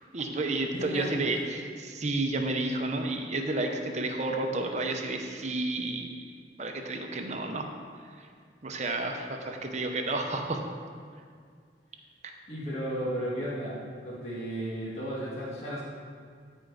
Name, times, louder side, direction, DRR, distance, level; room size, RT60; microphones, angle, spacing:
voice 1, 0.1-6.3 6.6-7.6 8.6-10.7 12.2-12.3, right 2 dB, 40° right, 3 dB, 0.8 m, -31 dB
voice 2, 0.7-1.1 12.5-15.8, equal, 40° left, -8 dB, 1.8 m, -34 dB
13.5 x 4.6 x 4.0 m, 2.1 s
head